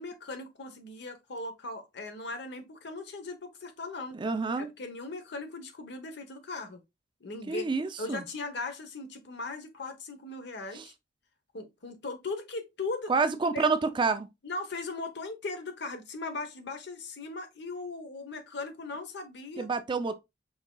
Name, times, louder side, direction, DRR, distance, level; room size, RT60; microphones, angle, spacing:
voice 1, 0.0-4.2 4.6-6.8 7.2-7.7 8.0-10.9 11.5-13.1 13.5-13.7 14.4-19.7, left 3 dB, 60° left, 0.9 m, -38 dB
voice 2, 4.1-4.7 7.5-8.2 10.7-10.9 13.1-14.3 19.6-20.2, right 4 dB, 25° right, 0.4 m, -28 dB
5.6 x 3.5 x 2.2 m
head